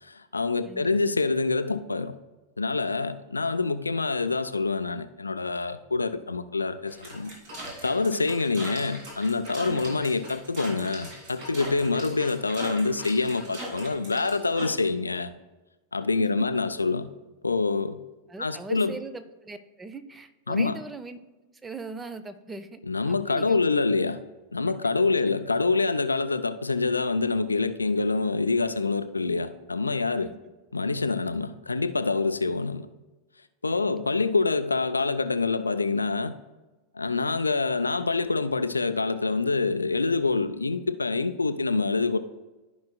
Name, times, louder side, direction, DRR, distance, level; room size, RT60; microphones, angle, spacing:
voice 1, 0.0-2.2 2.6-7.3 7.8-15.3 15.9-17.1 17.4-18.0 18.4-18.9 20.5-20.8 22.9-24.2 24.5-30.3 30.7-32.9 33.6-36.3 36.9-42.2, left 3 dB, 80° left, 10 dB, 0.4 m, -26 dB
sound 1, 6.9-14.7, right 1 dB, 50° right, 2.5 m, -40 dB
voice 2, 9.6-10.0 16.2-16.3 18.3-21.2 21.5-22.8 23.1-23.6 25.2-25.3 30.2-30.4 33.7-34.0, right 3 dB, 15° right, 11 dB, 0.6 m, -40 dB
14.0 x 5.2 x 2.2 m, 1.1 s
figure-of-eight pair, 90°, 0 cm